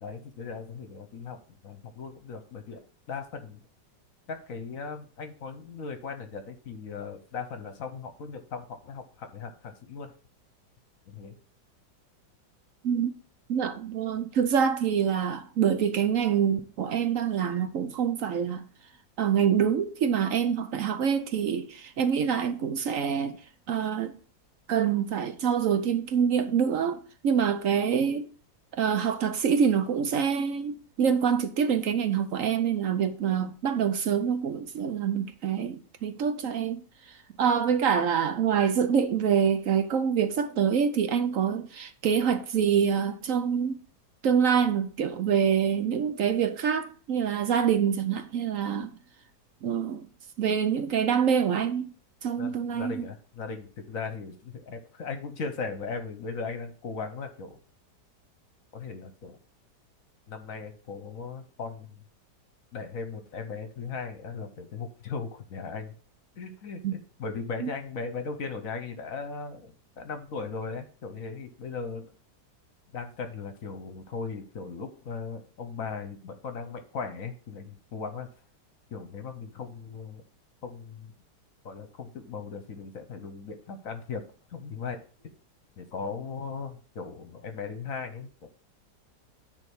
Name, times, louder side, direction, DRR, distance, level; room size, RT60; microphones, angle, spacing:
voice 1, 0.0-3.6 4.3-10.1 11.1-11.3 52.4-57.6 58.7-59.4 60.3-61.9 62.7-65.9 66.4-72.1 72.9-78.3 78.9-80.2 80.6-81.1 81.6-84.2 84.5-85.0 85.8-88.5, left 5 dB, 55° left, 1.3 m, -38 dB
voice 2, 13.5-18.6 19.2-23.4 23.7-24.2 24.7-27.0 27.2-28.3 28.8-36.8 37.4-43.7 44.2-48.9 49.6-50.1 50.4-51.9 52.2-53.1 66.8-66.9 67.6-67.7, right 7 dB, 65° right, 0.9 m, -26 dB
9.8 x 3.5 x 6.1 m
omnidirectional pair, 1.9 m